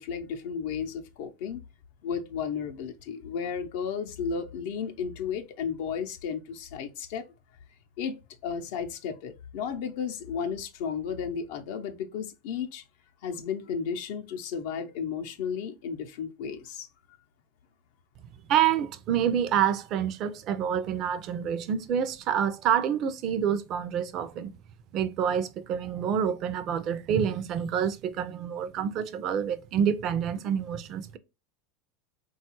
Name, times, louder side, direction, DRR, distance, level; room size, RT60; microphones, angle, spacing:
voice 1, 0.0-1.6 2.0-7.3 8.0-8.1 8.4-12.8 13.2-16.9, left 6 dB, 70° left, 0.5 m, -33 dB
voice 2, 18.5-24.5 24.9-31.2, right 8 dB, 50° right, 0.4 m, -27 dB
3.7 x 2.3 x 2.9 m
hypercardioid pair, 90°, 0 cm